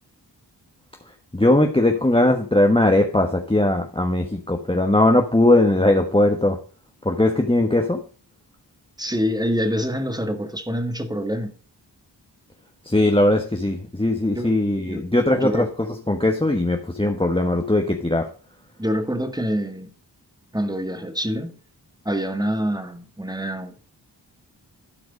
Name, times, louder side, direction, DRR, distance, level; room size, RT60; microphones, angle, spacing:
voice 1, 1.3-6.6 7.0-8.0 12.8-18.3, left 1 dB, 15° left, 1.3 m, -19 dB
voice 2, 9.0-11.5 14.3-14.6 14.9-15.0 15.4-15.7 18.8-19.9 20.5-21.6 22.1-23.8, equal, 10° right, 1.8 m, -26 dB
12.0 x 4.8 x 5.2 m
cardioid pair, 45°, 42 cm